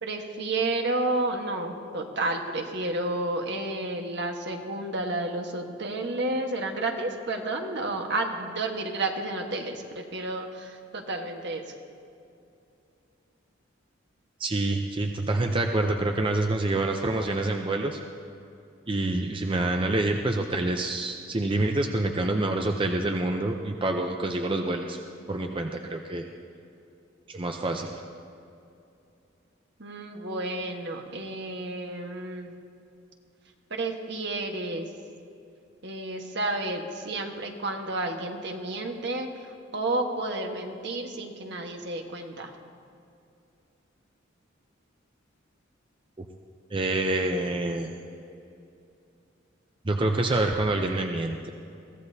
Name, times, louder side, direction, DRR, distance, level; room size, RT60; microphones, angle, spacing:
voice 1, 0.0-11.6 29.8-32.5 33.7-34.9 35.8-42.5, right 2 dB, 60° right, 3 dB, 1.4 m, -31 dB
voice 2, 14.4-18.0 18.9-25.0 25.3-26.2 27.3-27.9 46.2-46.3 46.7-47.9 49.8-51.5, right 2 dB, 25° right, 3 dB, 0.6 m, -27 dB
22.5 x 15.5 x 2.8 m, 2.6 s
head